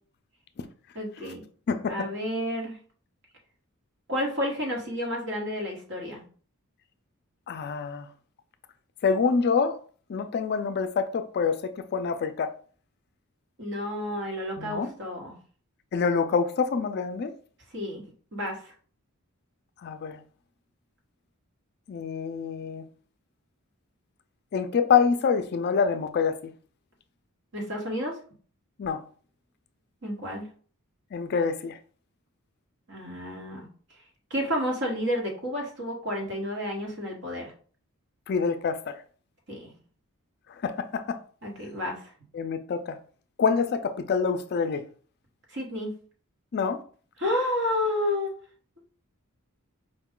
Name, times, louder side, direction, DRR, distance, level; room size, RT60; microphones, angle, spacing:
voice 1, 0.9-1.4 1.9-2.8 4.1-6.2 13.6-15.3 17.7-18.7 27.5-28.1 30.0-30.4 32.9-33.7 34.3-37.5 39.5-39.7 41.4-42.0 45.5-45.9 47.2-48.3, left 1 dB, 55° right, 1.4 m, -30 dB
voice 2, 1.7-2.1 7.5-8.1 9.0-9.8 10.1-12.5 14.6-14.9 15.9-17.3 19.8-20.2 21.9-22.9 24.5-26.4 28.8-29.0 31.1-31.8 38.3-39.0 40.6-41.2 42.3-43.0 43.4-44.8 46.5-46.8, left 5 dB, 50° left, 0.4 m, -26 dB
4.9 x 2.3 x 3.6 m
head